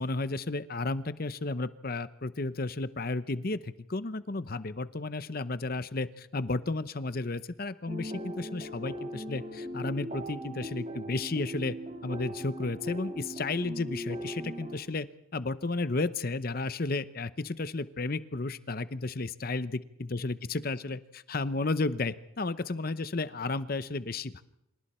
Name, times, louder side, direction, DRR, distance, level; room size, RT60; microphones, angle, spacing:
voice 1, 0.0-11.8 12.0-15.1 15.3-19.8 20.1-24.3, left 3 dB, 45° left, 14 dB, 0.8 m, -33 dB
sound 1, 7.9-14.8, equal, 30° right, 2.5 m, -39 dB
28.5 x 26.0 x 4.4 m, 0.83 s
head